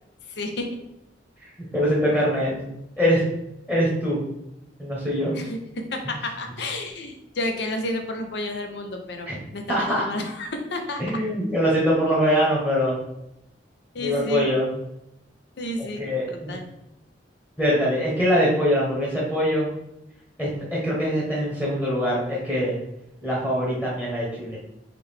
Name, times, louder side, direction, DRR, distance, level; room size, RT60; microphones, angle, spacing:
voice 1, 0.4-0.7 5.3-11.0 13.9-14.5 15.6-16.6, left 1 dB, 65° left, 4 dB, 0.7 m, -31 dB
voice 2, 1.7-2.7 3.0-3.2 3.7-4.2 4.8-5.3 9.3-9.4 9.7-10.0 11.0-13.0 14.0-14.7 16.0-16.6 17.6-19.7 20.4-22.8 23.2-24.6, equal, 10° left, -6 dB, 1.1 m, -23 dB
3.7 x 3.3 x 3.5 m, 0.84 s
head